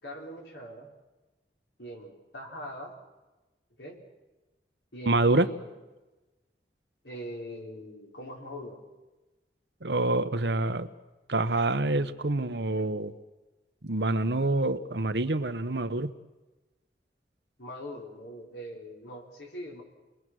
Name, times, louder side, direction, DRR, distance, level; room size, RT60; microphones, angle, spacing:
voice 1, 0.0-0.9 1.8-2.9 3.8-4.0 4.9-5.7 7.0-8.8 17.6-19.8, equal, 80° left, 0 dB, 5.0 m, -41 dB
voice 2, 5.1-5.5 9.8-10.9 11.3-13.1 13.8-16.1, right 2 dB, 75° right, 11 dB, 1.2 m, -26 dB
29.5 x 21.0 x 6.3 m, 1.1 s
head